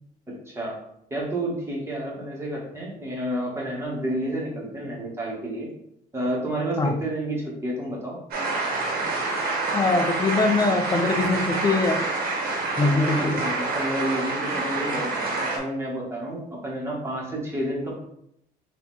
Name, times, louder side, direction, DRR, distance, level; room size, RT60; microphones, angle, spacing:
voice 1, 0.3-0.7 1.1-5.7 6.1-8.2 12.8-18.0, right 1 dB, 15° right, -3 dB, 1.7 m, -30 dB
sound 1, 8.3-15.6, right 3 dB, 60° right, 1.5 m, -27 dB
voice 2, 9.7-12.0 12.8-13.4, left 3 dB, 20° left, 6 dB, 0.5 m, -22 dB
4.3 x 2.8 x 4.1 m, 0.75 s
cardioid pair, 110°, 17 cm